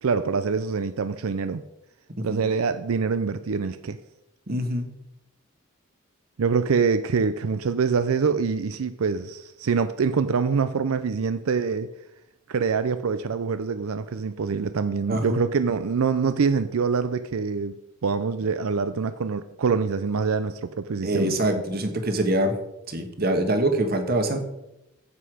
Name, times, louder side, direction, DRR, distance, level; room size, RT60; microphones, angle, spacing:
voice 1, 0.0-1.6 2.2-4.0 6.4-11.9 12.5-21.4, right 5 dB, 90° right, 0.5 m, -25 dB
voice 2, 4.5-4.9 15.1-15.4 21.0-22.5 22.9-24.5, right 1 dB, 45° right, 1.4 m, -24 dB
9.7 x 7.8 x 5.0 m
head